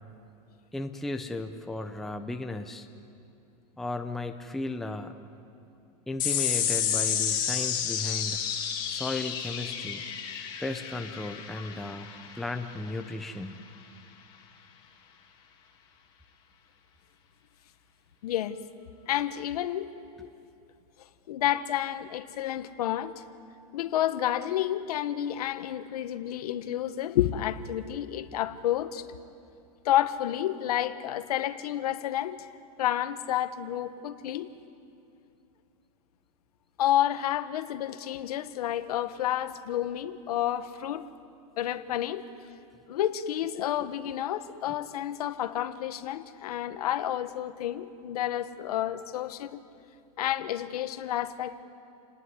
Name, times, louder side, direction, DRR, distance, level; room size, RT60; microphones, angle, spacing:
voice 1, 0.7-2.9 3.8-5.1 6.1-8.4 8.9-10.0 10.6-12.1 12.3-13.6, left 2 dB, ahead, 6 dB, 0.5 m, -35 dB
sound 1, 6.2-13.0, left 8 dB, 20° left, 2.3 m, -31 dB
voice 2, 18.2-18.6 19.1-19.9 20.2-20.3 21.3-23.1 23.7-29.0 29.8-32.5 32.8-34.5 36.8-41.0 41.6-42.2 42.9-49.6 50.2-51.6, left 12 dB, 75° left, 11 dB, 1.4 m, -30 dB
29.0 x 19.0 x 9.7 m, 2.6 s
supercardioid pair, 180°, 20 cm